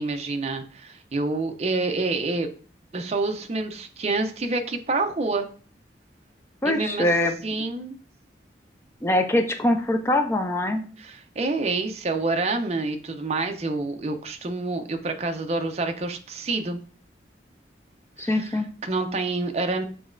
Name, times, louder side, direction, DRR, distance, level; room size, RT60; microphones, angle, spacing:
voice 1, 0.0-2.5 2.9-5.5 6.6-7.1 7.4-8.0 11.0-16.8 18.2-19.8, right 3 dB, 35° right, 6 dB, 0.5 m, -27 dB
voice 2, 6.6-7.4 9.0-10.8 18.2-18.7, left 1 dB, 15° left, 6 dB, 0.4 m, -23 dB
6.8 x 3.1 x 2.5 m, 0.41 s
head